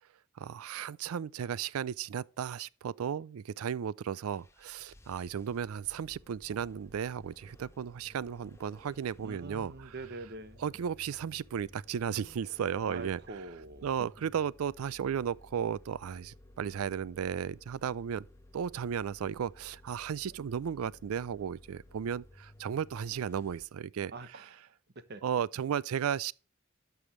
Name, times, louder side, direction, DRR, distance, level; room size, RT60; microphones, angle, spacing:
voice 1, 0.4-9.9 10.6-13.2 13.8-18.3 18.5-24.1 25.2-26.3, right 8 dB, 90° right, 0.4 m, -35 dB
sound 1, 4.3-23.7, left 1 dB, 15° left, 1.0 m, -57 dB
voice 2, 9.2-10.6 12.9-14.1 24.1-25.2, right 2 dB, 50° right, 1.1 m, -45 dB
11.5 x 6.9 x 3.1 m
head